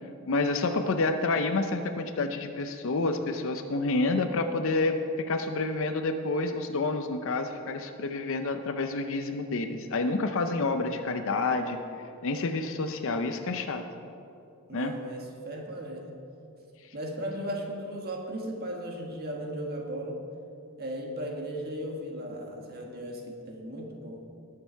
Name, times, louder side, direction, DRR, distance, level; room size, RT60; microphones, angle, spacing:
voice 1, 0.3-11.8 12.2-13.8 14.7-14.9, left 3 dB, 60° left, 7 dB, 0.6 m, -29 dB
voice 2, 14.7-16.1 16.9-20.2 20.8-24.2, right 1 dB, 45° right, 1 dB, 1.6 m, -36 dB
19.0 x 6.7 x 4.5 m, 2.7 s
head